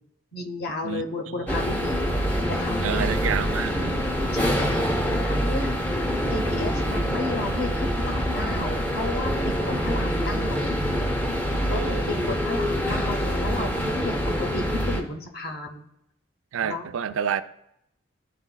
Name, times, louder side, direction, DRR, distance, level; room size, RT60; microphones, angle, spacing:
voice 1, 0.3-3.1 4.3-6.0 6.3-10.7 11.7-15.8 16.6-16.9, left 2 dB, 50° left, 3 dB, 0.8 m, -33 dB
voice 2, 0.8-1.5 2.8-4.0 11.7-12.4 16.5-17.4, right 8 dB, 80° right, 13 dB, 0.4 m, -30 dB
sound 1, 1.5-15.0, equal, 10° left, 0.5 m, -25 dB
11.0 x 4.0 x 2.2 m, 0.77 s
head